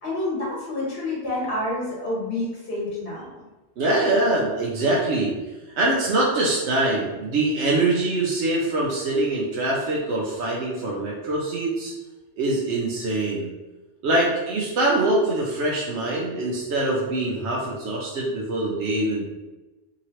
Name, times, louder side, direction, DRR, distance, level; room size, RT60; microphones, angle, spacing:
voice 1, 0.0-3.2, left 2 dB, 65° left, -6 dB, 1.4 m, -28 dB
voice 2, 3.8-5.3 5.8-11.9 12.4-13.5 14.0-19.3, right 2 dB, 90° right, -4 dB, 0.9 m, -23 dB
2.9 x 2.8 x 2.9 m, 1.1 s
omnidirectional pair, 1.1 m